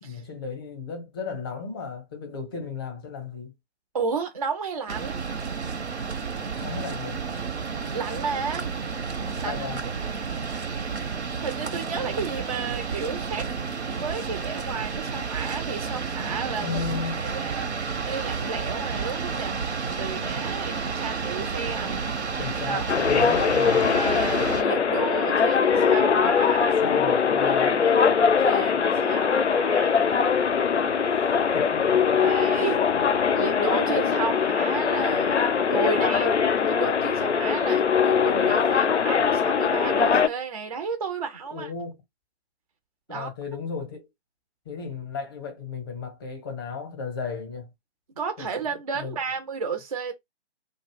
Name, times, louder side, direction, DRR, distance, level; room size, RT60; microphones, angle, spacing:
voice 1, 0.0-3.5 6.6-7.2 9.4-9.8 16.6-17.3 22.4-23.9 26.8-28.0 31.5-32.2 33.0-33.1 41.4-42.0 43.1-44.1 44.7-47.7 48.4-48.5 48.9-49.2, left 5 dB, 20° left, 0.6 m, -34 dB
voice 2, 3.9-5.2 7.9-8.7 9.4-9.6 11.4-13.5 13.9-16.8 17.2-19.6 20.0-22.4 22.6-22.9 23.9-27.0 27.6-27.9 28.4-30.2 32.2-32.9 33.3-35.4 35.7-41.7 43.1-43.3 48.2-50.1, right 5 dB, 35° right, 0.4 m, -32 dB
sound 1, 4.9-24.6, right 5 dB, 80° right, 0.7 m, -31 dB
sound 2, 22.9-40.3, left 6 dB, 90° left, 0.5 m, -22 dB
2.2 x 2.0 x 3.2 m
figure-of-eight pair, 135°, 33 cm